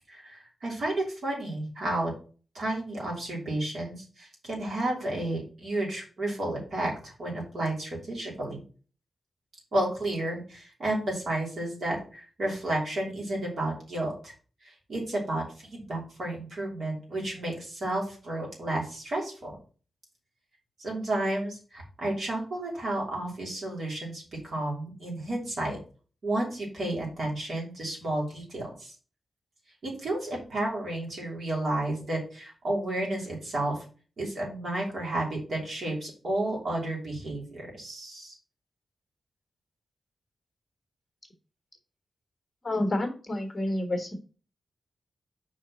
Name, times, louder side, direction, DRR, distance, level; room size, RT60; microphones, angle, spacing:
voice 1, 0.1-2.1 2.5-8.6 9.7-14.3 14.9-19.5 20.8-25.8 26.2-28.9 29.8-33.8 34.2-38.4, right 1 dB, 55° right, -2 dB, 3.0 m, -32 dB
voice 2, 42.6-44.1, left 1 dB, 25° left, 3 dB, 1.6 m, -29 dB
5.0 x 4.3 x 6.0 m, 0.38 s
wide cardioid pair, 155°, 0 cm